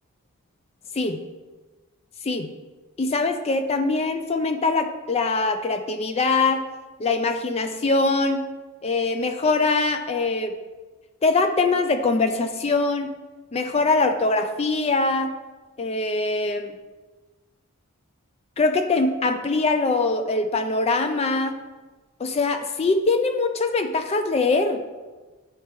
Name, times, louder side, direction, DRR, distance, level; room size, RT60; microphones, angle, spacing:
voice 1, 3.0-6.6 7.0-8.5 8.8-10.5 11.2-13.1 13.5-15.4 15.8-16.8 18.6-21.5 22.2-24.8, left 3 dB, 30° left, 7 dB, 0.3 m, -23 dB
9.3 x 4.2 x 3.4 m, 1.3 s
head